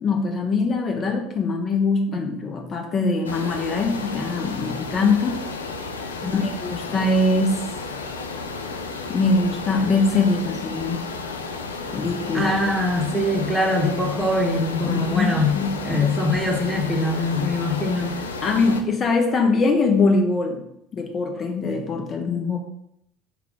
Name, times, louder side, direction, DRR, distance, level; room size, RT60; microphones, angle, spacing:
voice 1, 0.0-5.4 6.3-7.6 9.1-11.0 11.9-12.5 14.9-16.1 18.4-20.6 20.9-22.6, left 3 dB, 40° left, 3 dB, 0.6 m, -22 dB
sound 1, 3.2-18.8, left 4 dB, 85° left, 0.3 m, -32 dB
voice 2, 12.3-15.6 15.8-18.2, left 2 dB, ahead, -2 dB, 1.0 m, -23 dB
4.7 x 2.3 x 3.6 m, 0.75 s
hypercardioid pair, 65°, 0 cm